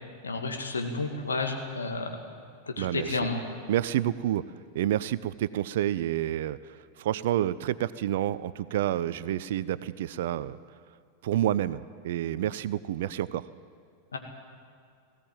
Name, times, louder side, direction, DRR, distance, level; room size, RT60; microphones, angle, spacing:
voice 1, 0.2-2.1 2.7-3.4 14.1-14.2, left 3 dB, 70° left, 4 dB, 2.3 m, -31 dB
voice 2, 2.8-3.2 3.7-4.4 4.7-10.6 11.2-13.5, right 12 dB, 55° right, 17 dB, 0.6 m, -29 dB
19.0 x 17.0 x 9.0 m, 2.3 s
figure-of-eight pair, 90°, 0 cm